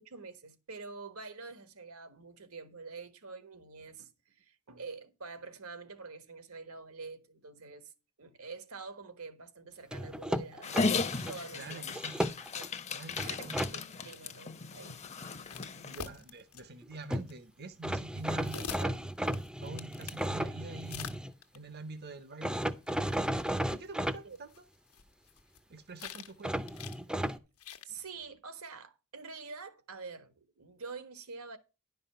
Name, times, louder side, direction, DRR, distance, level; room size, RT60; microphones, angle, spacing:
voice 1, 0.0-7.9 8.2-11.9 12.6-12.7 13.2-15.0 24.2-24.4 27.1-27.2 27.8-31.6, right 4 dB, 80° right, 1.4 m, -47 dB
sound 1, 9.9-11.3 11.9-12.7 13.2-13.7 16.8-16.9 17.1-17.3 17.8-21.3 22.4-24.2 26.4-27.4, right 1 dB, 5° right, 0.5 m, -34 dB
Dog, 10.6-16.0, left 4 dB, 30° left, 0.8 m, -35 dB
voice 2, 11.5-12.1 12.9-13.6 15.8-19.1 19.6-21.2 21.5-22.6 23.7-24.5 25.7-26.5, right 3 dB, 45° right, 0.8 m, -46 dB
sound 2, 15.5-16.6 17.1-17.3 18.1-20.3 20.8-21.6 22.9-23.0 23.1-23.2 23.4-23.5 24.4-25.6 26.0-26.4 26.7-27.0 27.6-27.9, left 6 dB, 80° left, 1.2 m, -44 dB
11.0 x 5.5 x 5.6 m
head